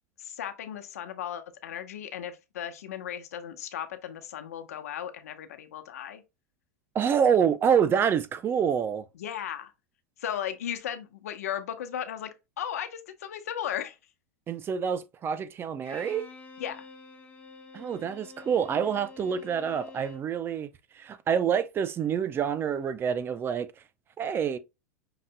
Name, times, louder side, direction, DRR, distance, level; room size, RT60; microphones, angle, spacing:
voice 1, 0.2-6.2 9.2-9.7 10.2-12.3 12.6-14.0 16.6-16.9, left 9 dB, 85° left, 0.9 m, -36 dB
voice 2, 6.9-9.1 14.5-16.3 17.7-23.7 24.2-24.6, right 7 dB, 30° right, 0.6 m, -27 dB
Bowed string instrument, 15.8-20.3, left 4 dB, 20° left, 1.4 m, -48 dB
5.9 x 3.9 x 2.2 m
supercardioid pair, 115°, 8 cm